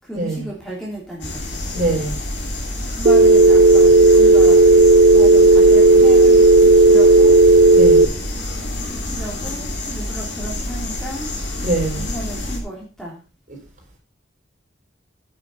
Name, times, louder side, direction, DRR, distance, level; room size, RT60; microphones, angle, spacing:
voice 1, 0.0-1.6 2.9-4.7 5.1-7.4 8.9-11.3 11.9-13.2, right 1 dB, ahead, -4 dB, 3.1 m, -34 dB
sound 1, 1.2-12.6, left 1 dB, 65° left, 3.7 m, -28 dB
voice 2, 1.7-2.2 7.7-8.1 11.6-12.1, right 2 dB, 40° right, 0 dB, 5.3 m, -22 dB
Telephone, 3.1-8.1, right 2 dB, 60° right, 0.7 m, -10 dB
9.8 x 7.9 x 5.5 m, 0.33 s
head